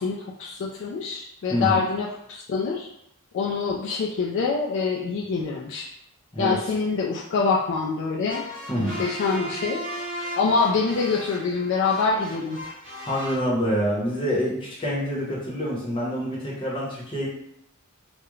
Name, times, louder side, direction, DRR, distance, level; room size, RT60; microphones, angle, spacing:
voice 1, 0.0-2.9 3.3-5.9 6.4-8.5 8.7-9.8 10.4-12.6, left 4 dB, 55° left, -3 dB, 0.3 m, -25 dB
sound 1, 8.3-13.4, equal, 40° right, 0.7 m, -36 dB
voice 2, 8.7-9.0 13.0-17.3, equal, 25° left, -6 dB, 0.8 m, -26 dB
2.3 x 2.1 x 3.0 m, 0.75 s
head